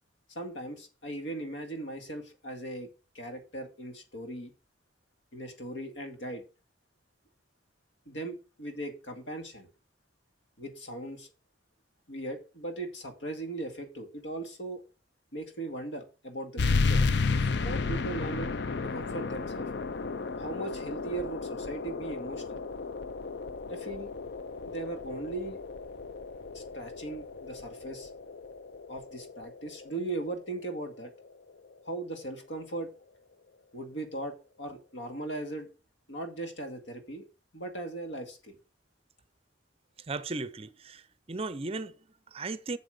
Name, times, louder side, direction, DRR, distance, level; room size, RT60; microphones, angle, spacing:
voice 1, 0.3-2.9 3.1-4.5 5.3-6.4 8.1-9.7 10.6-11.3 12.1-14.8 15.3-17.0 17.3-18.5 18.8-19.7 20.4-22.6 23.7-24.1 24.6-25.6 26.5-28.1 28.9-31.1 31.9-32.9 33.7-35.7 36.1-37.2 37.5-38.6, right 2 dB, 85° left, 2.1 m, -38 dB
sound 1, 16.6-31.7, left 4 dB, 60° left, 0.5 m, -33 dB
voice 2, 40.0-42.8, right 3 dB, 30° right, 0.6 m, -37 dB
7.8 x 7.1 x 5.0 m
head